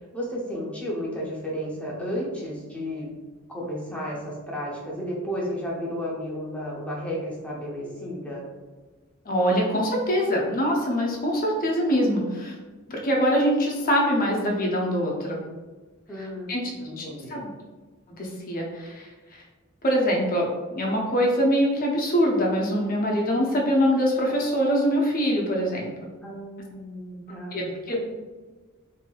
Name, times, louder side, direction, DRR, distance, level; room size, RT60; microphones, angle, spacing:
voice 1, 0.1-3.1 3.5-8.5 16.1-16.5 16.8-17.4 26.2-28.0, equal, 5° left, -4 dB, 0.7 m, -33 dB
voice 2, 9.3-12.5 12.9-15.4 16.5-16.7 17.0-17.5 18.2-19.4 19.8-20.5 20.7-26.1 27.5-28.0, equal, 45° left, -1 dB, 0.7 m, -24 dB
3.2 x 2.7 x 2.3 m, 1.3 s
head